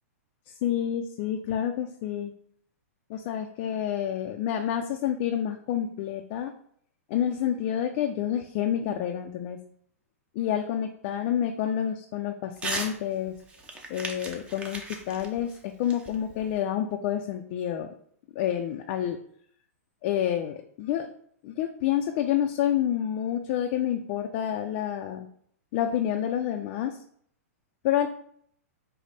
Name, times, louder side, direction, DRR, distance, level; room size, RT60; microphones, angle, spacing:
voice 1, 0.5-2.3 3.1-6.5 7.1-9.6 10.3-13.3 13.9-14.8 15.1-17.9 18.3-19.2 20.0-21.1 21.4-25.3 25.7-27.0 27.8-28.1, left 10 dB, 40° left, 4 dB, 0.4 m, -28 dB
Crumpling crinkling / Tearing, 12.6-12.9 13.3-16.6, right 2 dB, 15° right, 0.6 m, -36 dB
5.2 x 2.1 x 4.0 m, 0.64 s
hypercardioid pair, 140°, 8 cm